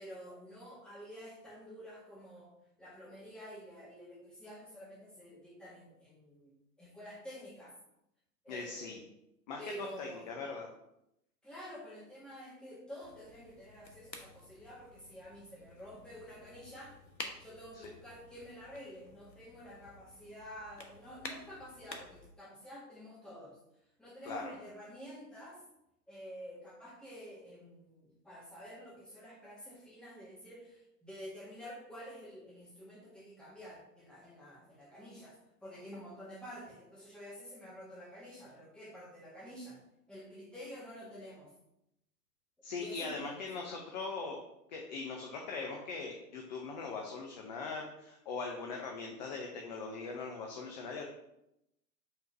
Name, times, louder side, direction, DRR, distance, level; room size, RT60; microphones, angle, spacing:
voice 1, 0.0-2.5 2.8-7.8 8.4-9.0 9.6-10.3 11.4-17.0 17.4-23.6 24.0-25.6 26.1-39.8 40.1-41.5 42.7-43.9, equal, ahead, -6 dB, 1.6 m, -49 dB
voice 2, 8.5-9.0 9.5-10.7 24.2-24.5 42.6-44.4 44.7-51.0, left 4 dB, 30° left, 1 dB, 0.6 m, -40 dB
sound 1, 13.0-22.3, left 3 dB, 80° left, 1.2 m, -51 dB
5.6 x 3.6 x 5.5 m, 0.83 s
figure-of-eight pair, 115°, 50 cm